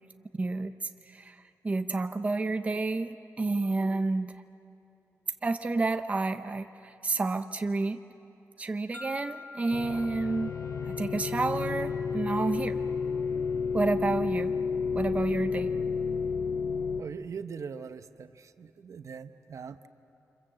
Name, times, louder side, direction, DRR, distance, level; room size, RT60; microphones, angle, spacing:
voice 1, 0.4-4.4 5.4-8.0 8.6-10.5 10.9-12.8 13.7-14.5 14.9-15.7, right 3 dB, 25° right, 8 dB, 0.6 m, -30 dB
sound 1, 8.9-12.9, left 3 dB, 35° left, 1.4 m, -49 dB
sound 2, 9.7-17.0, left 5 dB, 75° left, 0.9 m, -31 dB
voice 2, 17.0-19.9, right 6 dB, 65° right, 10 dB, 0.8 m, -41 dB
28.5 x 26.5 x 7.6 m, 2.7 s
wide cardioid pair, 155°, 6 cm